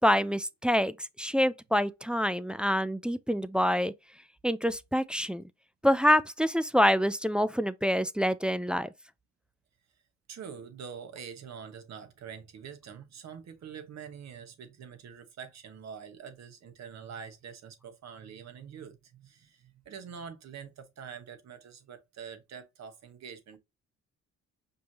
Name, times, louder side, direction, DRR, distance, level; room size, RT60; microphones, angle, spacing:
voice 1, 0.0-3.9 4.4-5.4 5.8-8.9, equal, 5° right, 0.3 m, -26 dB
voice 2, 10.3-23.6, right 7 dB, 60° right, 1.3 m, -45 dB
5.3 x 3.2 x 2.9 m
cardioid pair, 90°, 30 cm